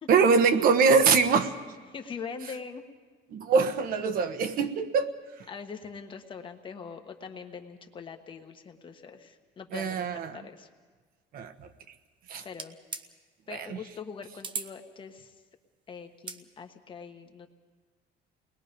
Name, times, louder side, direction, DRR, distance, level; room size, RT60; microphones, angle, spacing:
voice 1, 0.1-1.5 3.3-5.1 9.7-10.4 11.3-11.7 12.3-12.4 13.5-13.8, right 5 dB, 50° right, 9 dB, 1.3 m, -23 dB
voice 2, 1.9-2.8 5.5-10.1 10.3-10.7 12.4-12.8 13.5-15.3 15.9-17.5, left 6 dB, 25° left, 5 dB, 1.3 m, -42 dB
sound 1, 12.5-13.1 14.4-14.7 16.1-16.4, right 5 dB, 25° right, 0.8 m, -37 dB
29.5 x 20.5 x 5.2 m, 1.4 s
cardioid pair, 170°, 19 cm